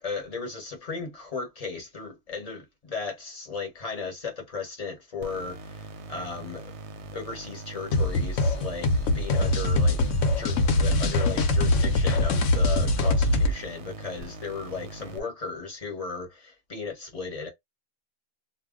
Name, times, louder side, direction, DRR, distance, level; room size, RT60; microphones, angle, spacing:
voice 1, 0.0-6.7 7.1-10.0 10.4-17.5, left 4 dB, 30° left, 0.8 m, -36 dB
sound 1, 5.2-15.2, right 3 dB, 65° right, 0.7 m, -42 dB
sound 2, 7.9-13.5, left 2 dB, 70° left, 0.9 m, -23 dB
2.4 x 2.1 x 3.5 m
omnidirectional pair, 1.5 m